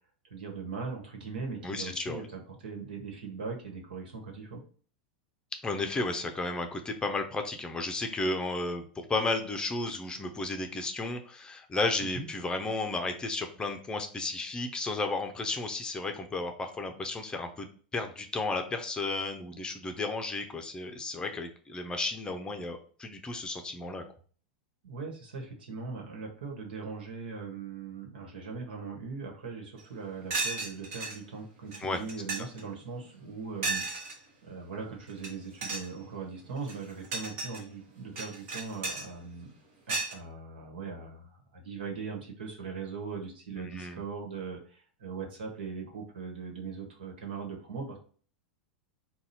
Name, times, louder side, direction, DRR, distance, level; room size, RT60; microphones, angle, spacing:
voice 1, 0.3-4.6 12.0-12.3 24.8-33.8 34.4-39.5 39.9-48.0, right 5 dB, 80° right, 2 dB, 1.3 m, -40 dB
voice 2, 1.6-2.2 5.6-17.7 17.9-24.0 31.8-32.0 43.6-44.0, left 3 dB, 15° left, 5 dB, 0.6 m, -33 dB
sound 1, 29.8-29.9 30.3-31.2 31.7-31.8 32.1-32.6 33.6-34.2 35.1-35.3 35.6-35.9 36.6-37.6 38.2-39.1 39.9-40.1, right 3 dB, 50° right, 1.2 m, -34 dB
4.0 x 2.3 x 4.0 m, 0.43 s
hypercardioid pair, 100°, 5 cm